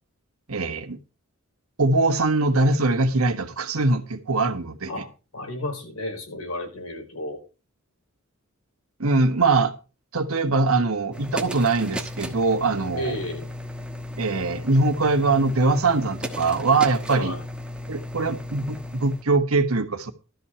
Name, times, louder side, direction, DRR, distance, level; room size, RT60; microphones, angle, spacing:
voice 1, 0.5-1.0 1.8-5.0 9.0-9.7 10.1-13.2 14.2-17.4 17.9-20.1, right 3 dB, 70° right, 1.4 m, -22 dB
voice 2, 5.3-7.4 12.9-13.5 17.1-17.4, left 1 dB, 85° left, 5.1 m, -32 dB
sound 1, 11.1-19.2, left 1 dB, 5° right, 1.2 m, -35 dB
13.0 x 5.7 x 6.7 m
head